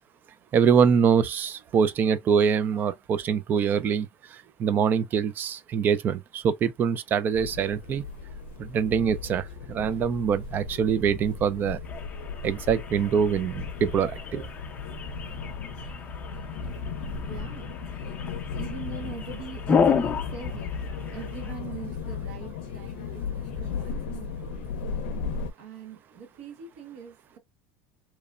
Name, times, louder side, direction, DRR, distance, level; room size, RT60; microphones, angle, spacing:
voice 1, 0.5-4.1 4.6-8.0 8.6-11.8 12.4-14.5, right 7 dB, 35° right, 0.3 m, -24 dB
sound 1, 7.3-25.5, left 5 dB, 85° left, 0.5 m, -36 dB
sound 2, 11.8-21.5, left 6 dB, 25° left, 0.5 m, -31 dB
voice 2, 17.2-17.8 18.5-20.7 21.1-24.7 25.6-27.4, right 7 dB, 80° right, 1.3 m, -42 dB
2.9 x 2.1 x 2.4 m
supercardioid pair, 125°, 6 cm